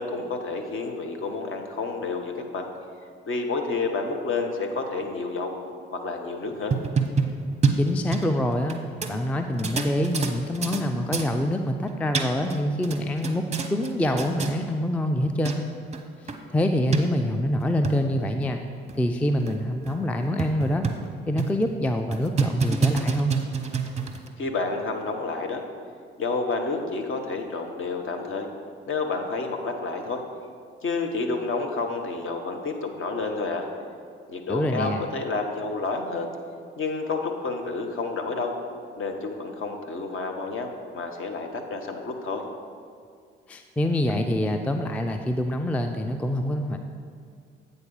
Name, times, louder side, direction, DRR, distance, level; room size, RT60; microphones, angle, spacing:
voice 1, 0.0-2.7 3.3-5.5 5.9-6.7 24.4-25.6 26.2-28.5 28.9-30.2 30.8-33.7 34.3-36.3 36.8-38.5 39.0-42.4, left 3 dB, 45° left, 4 dB, 1.0 m, -29 dB
sound 1, 6.5-8.8 9.0-9.1 9.6-10.8 11.1-11.3 11.9-12.6 12.8-13.9 14.2-14.5 15.2-15.3 15.5-15.6 15.9-16.0 16.3-16.4 16.9-17.0 17.6-18.0 18.5-18.6 18.9-19.0 19.5-19.6 19.9-20.0 20.4-21.1 21.4-21.6 22.1-24.3, right 5 dB, 20° right, 0.7 m, -26 dB
voice 2, 7.8-8.8 9.1-15.6 16.5-18.6 19.0-20.9 21.3-23.3 34.5-35.0 43.5-46.8, left 1 dB, 5° left, 5 dB, 0.4 m, -25 dB
8.2 x 4.1 x 5.4 m, 2.2 s
figure-of-eight pair, 45°, 30 cm